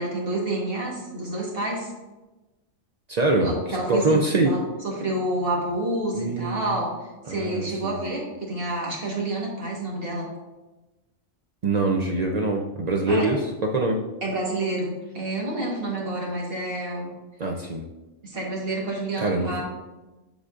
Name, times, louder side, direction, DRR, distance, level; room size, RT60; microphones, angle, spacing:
voice 1, 0.0-1.9 3.4-4.6 4.8-10.3 13.1-13.3 14.2-17.1 18.2-19.6, right 1 dB, 45° right, -3 dB, 1.6 m, -29 dB
voice 2, 3.1-4.6 6.1-6.7 7.3-8.0 11.6-14.0 17.4-17.8 19.2-19.6, right 2 dB, 70° right, 1 dB, 0.4 m, -24 dB
7.0 x 6.3 x 2.5 m, 1.1 s
omnidirectional pair, 1.4 m